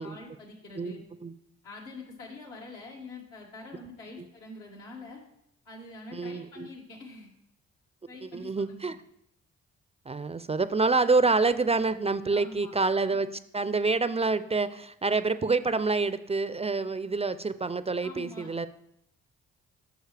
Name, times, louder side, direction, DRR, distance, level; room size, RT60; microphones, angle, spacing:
voice 1, 0.0-1.0 1.6-5.2 5.7-7.3 8.1-9.0 12.3-12.7 18.0-18.7, left 3 dB, 85° left, -3 dB, 2.2 m, -45 dB
voice 2, 0.8-1.3 6.1-6.7 8.3-8.9 10.1-13.3 13.5-18.7, right 3 dB, 20° right, 13 dB, 0.4 m, -27 dB
9.4 x 6.2 x 3.3 m, 0.76 s
supercardioid pair, 55°, 30 cm